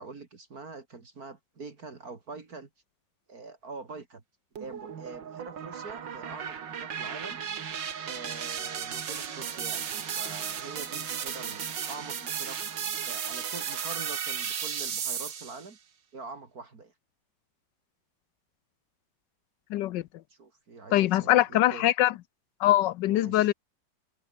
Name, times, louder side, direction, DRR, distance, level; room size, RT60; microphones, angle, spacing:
voice 1, 0.0-2.7 3.3-4.2 4.6-7.4 8.0-9.9 10.1-12.6 13.0-15.8 16.1-16.9 20.3-21.9 23.1-23.5, right 4 dB, 55° right, 2.9 m, -44 dB
sound 1, 4.6-15.7, right 8 dB, 75° right, 2.4 m, -35 dB
voice 2, 19.7-20.0 20.9-22.1 22.6-23.5, left 14 dB, 75° left, 1.3 m, -23 dB
omnidirectional pair, 2.0 m